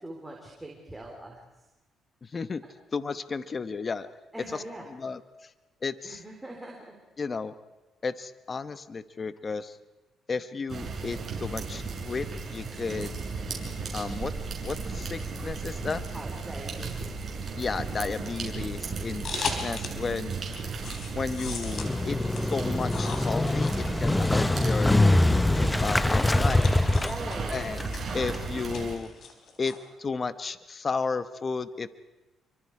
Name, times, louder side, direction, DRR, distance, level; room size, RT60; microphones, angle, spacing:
voice 1, 0.0-1.4 2.6-2.7 4.3-4.8 6.0-7.0 16.1-17.2 25.5-26.7 27.0-27.6, right 1 dB, 10° right, 0 dB, 4.0 m, -42 dB
voice 2, 2.2-2.6 2.9-4.1 4.5-4.6 4.9-5.5 5.8-6.2 7.2-7.5 8.0-9.8 10.3-13.2 13.9-14.3 14.6-16.0 17.5-20.3 21.1-26.7 27.5-27.8 28.1-29.1 29.6-31.9, left 4 dB, 35° left, 12 dB, 1.0 m, -33 dB
sound 1, 10.7-29.0, right 4 dB, 45° right, 6.6 m, -35 dB
sound 2, 19.2-20.1 20.4-29.8, left 5 dB, 60° left, 4.0 m, -40 dB
Motorcycle, 21.7-28.5, left 2 dB, 10° left, 0.7 m, -24 dB
28.0 x 24.5 x 4.9 m, 1.1 s
cardioid pair, 90°, 0 cm